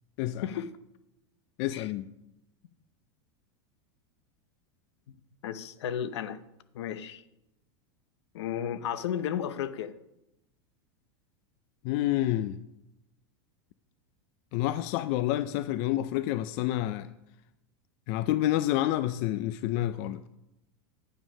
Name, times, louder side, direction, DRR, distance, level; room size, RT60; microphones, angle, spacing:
voice 1, 1.6-2.1 11.8-12.6 14.5-17.1 18.1-20.3, left 14 dB, 55° left, 0.4 m, -28 dB
voice 2, 5.4-6.4 6.7-7.2 8.3-9.9, left 9 dB, 85° left, 0.8 m, -33 dB
9.3 x 6.1 x 5.5 m
supercardioid pair, 125°, 14 cm